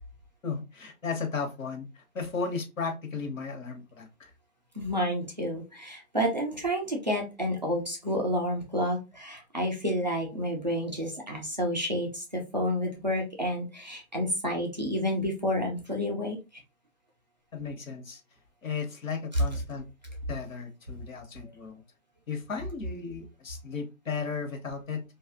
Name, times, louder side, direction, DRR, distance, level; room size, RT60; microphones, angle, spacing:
voice 1, 0.4-4.3 17.5-18.2 18.6-19.9 20.3-21.8 22.3-25.0, left 5 dB, 70° left, 4 dB, 1.0 m, -35 dB
voice 2, 4.8-16.4, equal, 35° right, 0 dB, 0.5 m, -30 dB
2.6 x 2.4 x 2.5 m, 0.26 s
hypercardioid pair, 165°, 41 cm